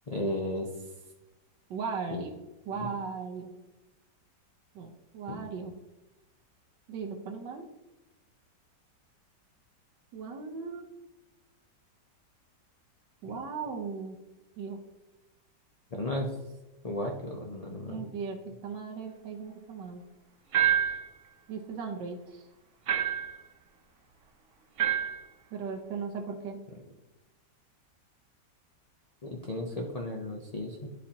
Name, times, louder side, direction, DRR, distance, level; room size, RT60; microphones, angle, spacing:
voice 1, 0.1-0.7 2.7-2.9 5.3-5.4 15.9-16.3 16.8-18.1 29.3-30.9, left 1 dB, 80° left, 0 dB, 0.3 m, -34 dB
voice 2, 1.7-2.3 2.6-3.5 4.7-5.7 6.9-7.7 10.1-10.9 13.2-14.2 14.6-14.8 17.9-20.0 21.5-22.5 25.5-26.6, right 5 dB, 85° right, 2 dB, 1.4 m, -37 dB
sound 1, 20.5-21.1 22.9-23.4 24.8-25.2, right 9 dB, 55° right, 1.2 m, -26 dB
11.0 x 4.2 x 2.8 m, 1.0 s
omnidirectional pair, 1.9 m